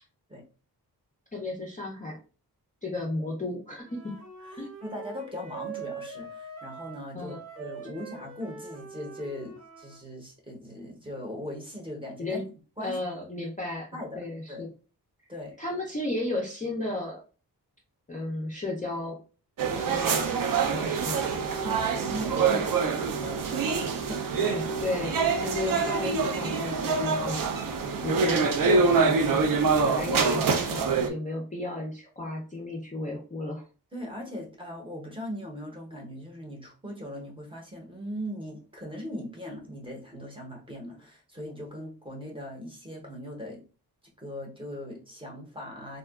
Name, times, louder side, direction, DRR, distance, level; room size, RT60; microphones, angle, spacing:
voice 1, 1.3-2.2 2.8-4.1 4.6-4.7 7.1-7.4 12.2-12.4 12.8-13.9 14.2-14.7 15.6-17.2 18.1-19.2 19.8-21.2 24.3-27.5 28.0-29.5 29.8-33.6, left 2 dB, 20° left, -2 dB, 0.4 m, -33 dB
Wind instrument woodwind instrument, 3.8-10.0, right 5 dB, 40° right, 0.9 m, -43 dB
voice 2, 4.5-12.4 12.8-13.0 13.4-13.5 13.9-14.2 14.5-14.6 15.3-15.6 19.7-19.8 21.5-24.2 33.9-43.6 44.2-46.0, equal, 15° right, -1 dB, 0.7 m, -39 dB
sound 1, 19.6-31.1, right 5 dB, 60° right, 0.4 m, -25 dB
3.6 x 2.2 x 2.2 m, 0.36 s
wide cardioid pair, 175°, 39 cm